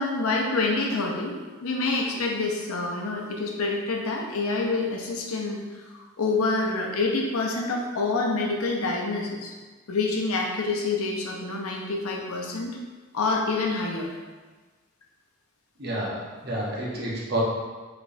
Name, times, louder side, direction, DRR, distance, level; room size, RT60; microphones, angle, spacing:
voice 1, 0.0-5.6 5.9-9.5 9.9-12.8 13.1-14.1, left 3 dB, 90° left, 0 dB, 0.7 m, -27 dB
voice 2, 15.8-17.4, right 1 dB, 50° right, -5 dB, 1.0 m, -29 dB
5.0 x 3.3 x 2.6 m, 1.4 s
head